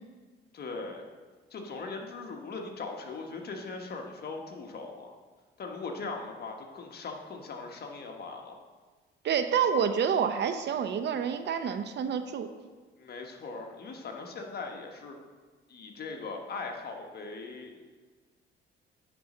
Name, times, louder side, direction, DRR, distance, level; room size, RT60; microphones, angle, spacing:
voice 1, 0.5-1.0 1.5-5.2 5.6-8.6 13.0-15.2 15.7-17.9, left 4 dB, 55° left, 2 dB, 1.3 m, -40 dB
voice 2, 9.2-12.5, right 7 dB, 60° right, 9 dB, 0.7 m, -28 dB
9.3 x 4.1 x 5.5 m, 1.4 s
cardioid pair, 90°, 20 cm